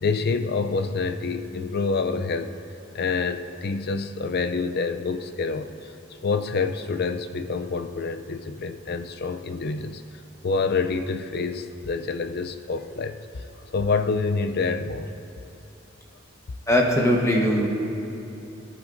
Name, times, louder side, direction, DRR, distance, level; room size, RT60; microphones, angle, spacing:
voice 1, 0.0-2.5 2.9-5.7 6.2-10.0 10.4-13.2 13.7-15.1, left 4 dB, 50° left, 9 dB, 0.5 m, -27 dB
voice 2, 16.7-17.7, equal, 15° left, -1 dB, 1.1 m, -20 dB
18.5 x 11.0 x 2.6 m, 3.0 s
head